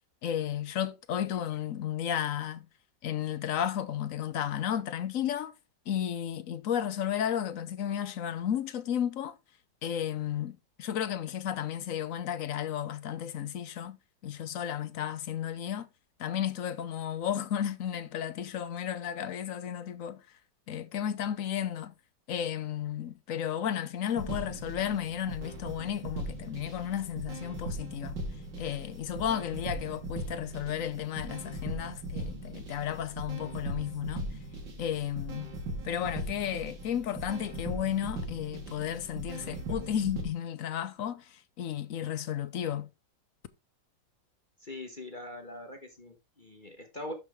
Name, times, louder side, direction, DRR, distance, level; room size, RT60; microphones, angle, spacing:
voice 1, 0.2-2.7 3.0-5.5 5.9-9.4 9.8-14.0 14.2-15.9 16.2-20.2 20.7-21.9 22.3-28.2 28.6-34.3 34.8-35.5 35.8-42.9, left 9 dB, 60° left, 1.0 m, -33 dB
sound 1, 24.0-40.2, right 1 dB, 80° right, 2.8 m, -39 dB
voice 2, 44.6-47.1, left 1 dB, 30° left, 1.2 m, -42 dB
12.0 x 5.0 x 3.6 m
omnidirectional pair, 2.0 m